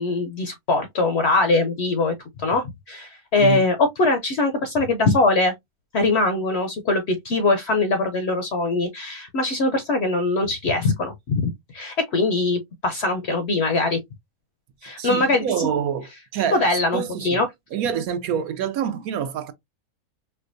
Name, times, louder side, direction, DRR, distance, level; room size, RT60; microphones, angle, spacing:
voice 1, 0.0-2.1 2.4-5.5 5.9-14.0 14.8-15.7 16.5-17.5, left 3 dB, 60° left, 0.7 m, -22 dB
voice 2, 15.0-17.4 17.7-19.5, right 8 dB, 80° right, 1.1 m, -27 dB
4.5 x 2.2 x 2.5 m
omnidirectional pair, 1.5 m